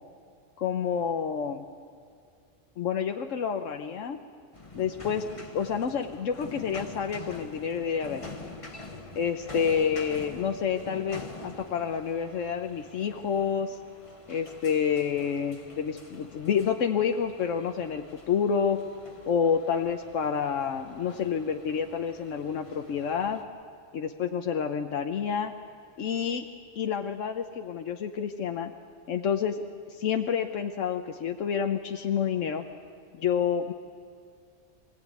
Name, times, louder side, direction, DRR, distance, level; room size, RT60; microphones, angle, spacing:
voice 1, 0.6-1.6 2.8-4.2 4.8-5.2 5.5-8.2 9.2-13.8 14.3-18.8 19.3-23.4 23.9-25.5 26.0-26.4 26.8-28.7 29.1-29.6 29.9-32.6 33.1-33.7, left 7 dB, 85° left, 5 dB, 1.2 m, -28 dB
sound 1, 4.5-23.4, left 2 dB, 25° left, 1.4 m, -46 dB
24.5 x 16.0 x 9.4 m, 2.2 s
omnidirectional pair, 1.3 m